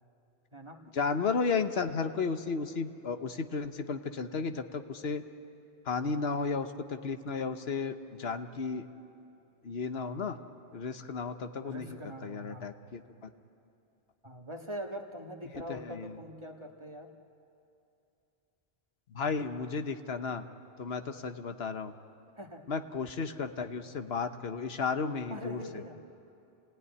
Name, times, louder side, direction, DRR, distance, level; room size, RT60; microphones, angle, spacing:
voice 1, 0.9-5.2 5.9-8.8 9.6-10.4 10.7-12.0 12.2-13.0 15.7-16.0 19.1-20.4 20.8-21.9 22.7-25.6, left 5 dB, 80° left, 8 dB, 1.3 m, -33 dB
voice 2, 11.6-12.8 14.2-17.1 22.4-22.6 25.3-25.9, equal, 30° right, 2 dB, 1.8 m, -43 dB
28.5 x 18.0 x 9.8 m, 2.7 s
omnidirectional pair, 1.0 m